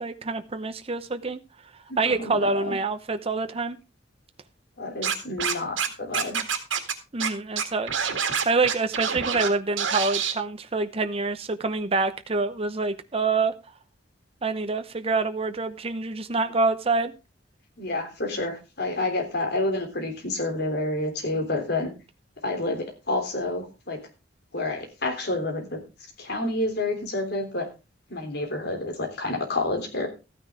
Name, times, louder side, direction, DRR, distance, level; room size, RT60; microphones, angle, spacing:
voice 1, 0.0-1.4 2.0-3.8 7.1-8.1 8.4-13.5 14.4-17.1, right 3 dB, 30° right, 9 dB, 0.8 m, -26 dB
voice 2, 2.0-2.7 4.8-6.4 17.8-21.9 22.4-24.0 24.5-25.8 26.2-27.7 28.1-30.1, left 2 dB, 60° left, 4 dB, 3.5 m, -29 dB
Scratching (performance technique), 5.0-5.9 6.1-6.9 7.2-7.3 7.6-9.5 9.8-10.3, right 7 dB, 85° right, 2.0 m, -26 dB
14.0 x 9.5 x 3.7 m, 0.29 s
head